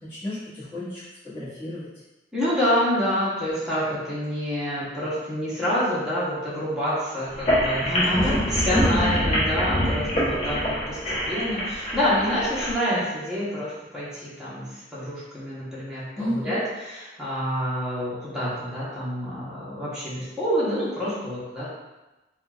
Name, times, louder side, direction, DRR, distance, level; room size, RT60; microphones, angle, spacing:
voice 1, 0.0-1.9 8.1-9.1 16.2-16.6, left 1 dB, 15° left, -14 dB, 1.3 m, -31 dB
voice 2, 2.3-21.7, equal, 5° right, -10 dB, 0.8 m, -27 dB
sound 1, 7.3-12.7, equal, 40° left, 0.9 m, -25 dB
3.8 x 2.2 x 2.3 m, 1.1 s
head